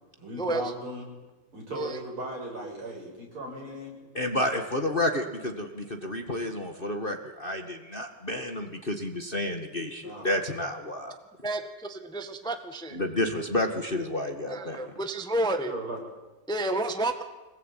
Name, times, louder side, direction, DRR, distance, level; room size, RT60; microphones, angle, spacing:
voice 1, 0.2-1.1 1.5-4.0 10.0-10.4 15.6-16.0, right 1 dB, 70° right, -1 dB, 8.3 m, -37 dB
voice 2, 4.1-11.2 12.9-14.9, left 1 dB, 25° left, 5 dB, 1.9 m, -30 dB
voice 3, 11.4-13.0 14.5-15.7 16.5-17.2, right 2 dB, ahead, 7 dB, 1.4 m, -30 dB
26.0 x 19.5 x 9.2 m, 1.2 s
omnidirectional pair, 2.4 m